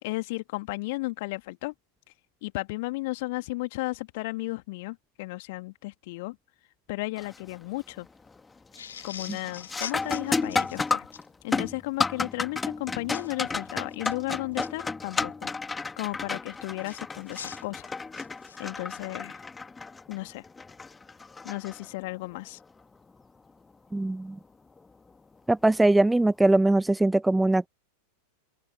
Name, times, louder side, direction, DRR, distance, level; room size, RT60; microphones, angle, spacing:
voice 1, 0.0-1.7 2.4-6.4 6.9-8.1 9.0-11.1 11.4-15.5 16.0-17.9 18.6-19.4 20.1-20.4 21.4-22.6, left 22 dB, 50° left, 2.3 m, -34 dB
sound 1, 7.2-7.6 8.0-8.4 8.7-22.3 24.8-24.9 25.7-25.9, left 4 dB, 10° left, 1.9 m, -33 dB
sound 2, 8.8-11.3 13.1-13.3 13.9-14.7 16.8-18.7, left 8 dB, 65° left, 5.6 m, -42 dB
voice 2, 23.9-24.4 25.5-27.7, right 2 dB, 5° right, 0.5 m, -21 dB
open air
figure-of-eight pair, 90°, 0 cm